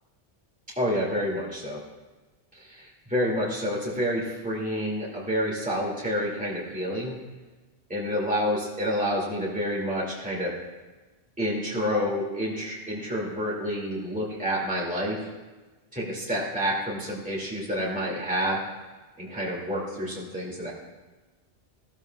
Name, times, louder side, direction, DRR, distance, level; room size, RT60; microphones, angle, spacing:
voice 1, 0.8-1.8 2.5-7.2 7.9-10.5 11.4-15.3 15.9-18.6 19.2-20.7, equal, 5° right, -5 dB, 2.3 m, -28 dB
16.0 x 13.0 x 2.3 m, 1.2 s
omnidirectional pair, 1.2 m